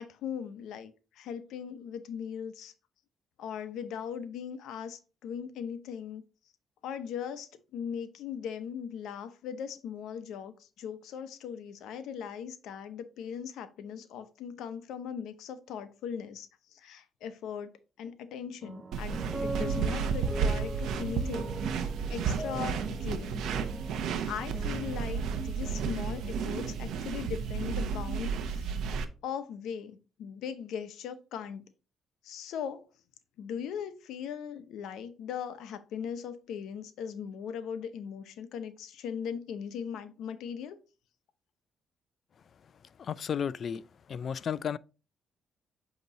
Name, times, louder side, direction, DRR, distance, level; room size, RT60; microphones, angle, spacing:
voice 1, 0.0-2.7 3.4-6.2 6.8-23.5 24.3-29.0 29.2-31.6 32.2-32.9 33.4-40.8, left 8 dB, 85° left, 0.7 m, -39 dB
sound 1, 18.6-28.0, right 2 dB, 20° right, 0.6 m, -42 dB
sound 2, 18.9-29.0, right 6 dB, 80° right, 0.7 m, -32 dB
voice 2, 43.0-43.8 44.1-44.8, left 7 dB, 55° left, 0.3 m, -33 dB
8.0 x 3.0 x 4.0 m
cardioid pair, 90°, 0 cm